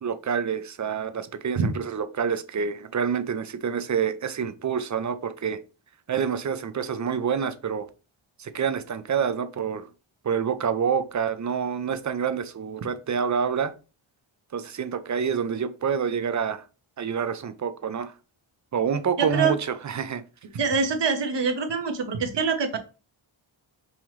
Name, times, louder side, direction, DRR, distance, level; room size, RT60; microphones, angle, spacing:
voice 1, 0.0-5.6 6.1-7.9 8.4-9.9 10.2-13.7 14.5-16.6 17.0-18.1 18.7-20.2, right 7 dB, 35° right, 0.5 m, -27 dB
voice 2, 19.2-19.5 20.5-22.8, right 5 dB, 55° right, 1.0 m, -24 dB
5.4 x 3.0 x 3.1 m
wide cardioid pair, 105°, 49 cm